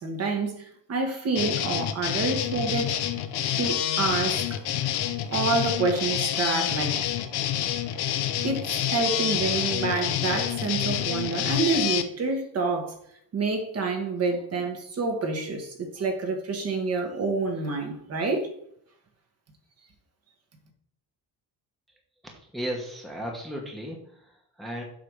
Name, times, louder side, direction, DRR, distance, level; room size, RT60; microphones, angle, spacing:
voice 1, 0.0-3.0 3.6-4.4 5.3-7.1 8.4-13.0 13.3-18.5, right 3 dB, 40° right, 1.4 m, -28 dB
sound 1, 1.3-12.0, left 11 dB, 80° left, 0.9 m, -28 dB
voice 2, 22.3-24.8, equal, ahead, 1.0 m, -35 dB
7.7 x 3.4 x 6.2 m
cardioid pair, 170°, 39 cm